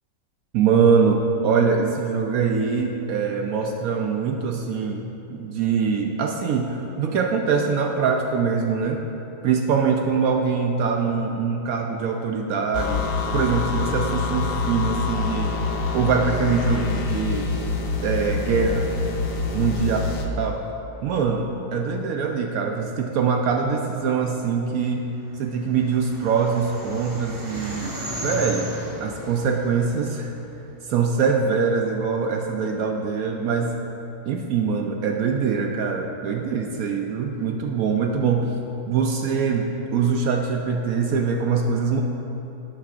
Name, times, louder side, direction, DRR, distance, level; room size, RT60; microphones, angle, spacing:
voice 1, 0.5-9.0 9.4-15.5 15.9-17.5 18.0-18.9 19.5-20.0 20.4-20.6 21.0-25.1 25.4-28.8 29.0-30.3 30.9-33.8 34.3-38.5 38.9-42.0, right 5 dB, 70° right, 2 dB, 0.9 m, -23 dB
sound 1, 12.7-20.3, left 4 dB, 70° left, 0.5 m, -26 dB
sound 2, 25.4-30.8, equal, 20° right, 0.7 m, -35 dB
11.5 x 8.8 x 2.5 m, 3.0 s
omnidirectional pair, 1.8 m